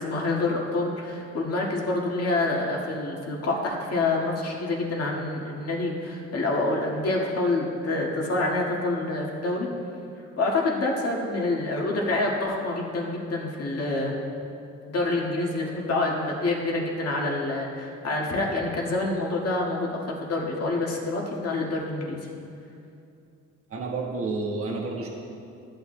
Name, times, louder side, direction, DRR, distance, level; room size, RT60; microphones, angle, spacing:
voice 1, 0.0-9.7 10.4-14.2 14.9-22.3, left 2 dB, 55° left, -2 dB, 1.8 m, -27 dB
voice 2, 23.7-25.1, right 3 dB, 50° right, -2 dB, 1.4 m, -30 dB
14.5 x 8.9 x 2.2 m, 2.5 s
cardioid pair, 90°, 30 cm